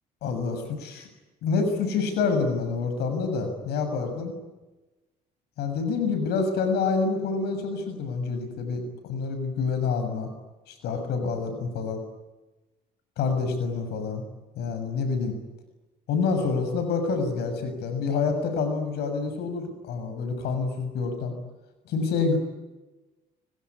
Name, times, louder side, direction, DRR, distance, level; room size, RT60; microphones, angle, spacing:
voice 1, 0.2-1.1 1.4-4.3 5.6-10.3 10.7-12.0 13.2-14.2 14.6-15.4 16.1-21.3 21.9-22.4, left 4 dB, 75° left, 7 dB, 6.9 m, -27 dB
25.0 x 23.5 x 9.9 m, 1.1 s
cardioid pair, 110°, 17 cm